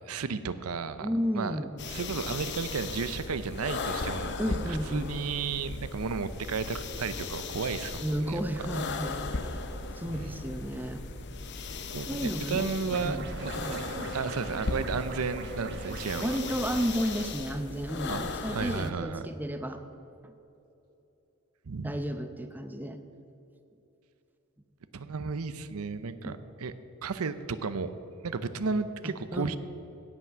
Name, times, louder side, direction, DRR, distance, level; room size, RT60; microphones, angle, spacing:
voice 1, 0.1-1.1 1.3-4.6 4.9-8.4 10.1-10.3 11.9-13.8 14.1-16.4 18.1-18.2 18.5-19.2 21.7-22.0 24.9-26.7 27.0-27.9 28.2-29.6, right 5 dB, 85° right, 13 dB, 0.6 m, -33 dB
voice 2, 1.0-1.7 4.4-5.1 8.0-9.6 9.9-11.0 12.1-12.7 13.0-13.9 16.2-19.8 20.2-20.3 21.8-23.0 26.3-26.4 29.0-29.6, equal, 10° right, 7 dB, 0.6 m, -33 dB
Breathing calm mouth exhale, 1.8-18.9, left 3 dB, 55° left, 0.8 m, -37 dB
sound 1, 12.9-17.3, right 2 dB, 50° right, 1.3 m, -40 dB
16.5 x 6.0 x 6.8 m, 3.0 s
head